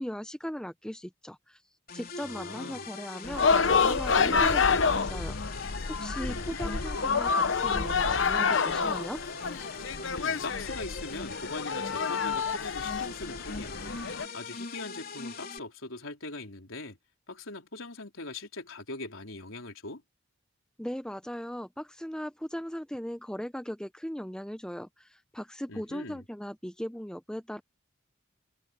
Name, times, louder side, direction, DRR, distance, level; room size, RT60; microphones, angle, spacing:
voice 1, 0.0-1.6 1.9-9.2 20.8-27.6, equal, 5° left, 0.7 m, -38 dB
sound 1, 1.9-15.6, left 4 dB, 45° left, 3.6 m, -41 dB
voice 2, 2.2-2.9 6.2-6.6 10.1-13.9 14.3-17.0 17.3-20.0 25.7-26.2, left 2 dB, 90° left, 3.8 m, -41 dB
sound 2, 3.2-14.3, left 5 dB, 65° left, 0.9 m, -28 dB
head